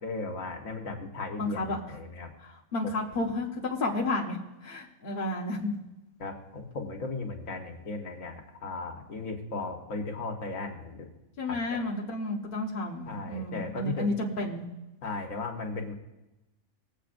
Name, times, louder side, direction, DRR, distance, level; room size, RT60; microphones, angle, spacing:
voice 1, 0.0-2.3 2.8-2.9 6.2-11.1 11.5-11.8 13.1-14.1 15.0-15.9, left 3 dB, 70° left, 2 dB, 1.6 m, -36 dB
voice 2, 1.4-2.0 2.4-3.5 3.8-4.4 4.6-5.7 11.4-14.6, left 2 dB, 40° left, -2 dB, 1.4 m, -31 dB
23.5 x 8.0 x 2.5 m, 1.0 s
omnidirectional pair, 1.5 m